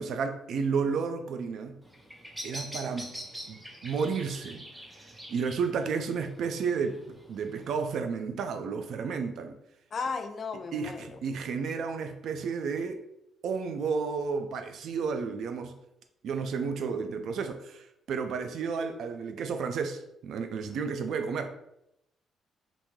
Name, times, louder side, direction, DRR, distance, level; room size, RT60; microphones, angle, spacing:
voice 1, 0.0-1.8 2.4-3.1 3.5-4.7 5.3-7.0 7.3-9.6 10.7-13.0 13.4-15.7 16.2-21.5, right 5 dB, 70° right, 0.3 m, -32 dB
Bird vocalization bird call bird song, 1.8-7.8, equal, 5° right, 0.5 m, -45 dB
voice 2, 9.9-11.2, left 4 dB, 45° left, 0.3 m, -35 dB
2.6 x 2.1 x 3.0 m
cardioid pair, 90°, 0 cm